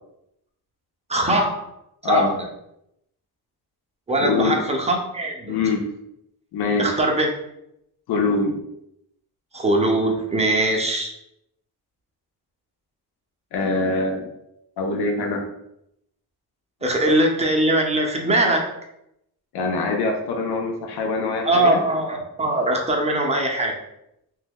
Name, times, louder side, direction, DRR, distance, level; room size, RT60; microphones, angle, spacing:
voice 1, 1.1-1.7 2.1-2.3 4.1-5.6 6.8-7.3 9.5-11.1 16.8-18.7 21.4-23.7, right 1 dB, 15° right, 1 dB, 0.6 m, -21 dB
voice 2, 4.2-4.6 5.5-5.8 6.5-7.0 8.1-8.6 13.5-14.3 14.8-15.4 19.5-21.8, left 3 dB, 80° left, 2 dB, 0.7 m, -23 dB
2.7 x 2.3 x 3.5 m, 0.80 s
cardioid pair, 110°, 38 cm